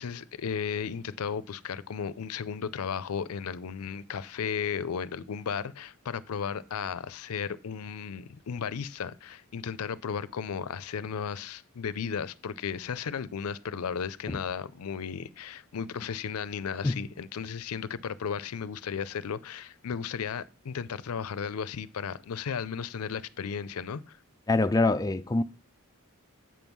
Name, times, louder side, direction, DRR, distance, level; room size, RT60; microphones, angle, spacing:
voice 1, 0.0-24.2, left 6 dB, 80° left, 0.5 m, -35 dB
voice 2, 24.5-25.4, left 2 dB, 15° left, 0.3 m, -24 dB
7.5 x 5.4 x 6.0 m
head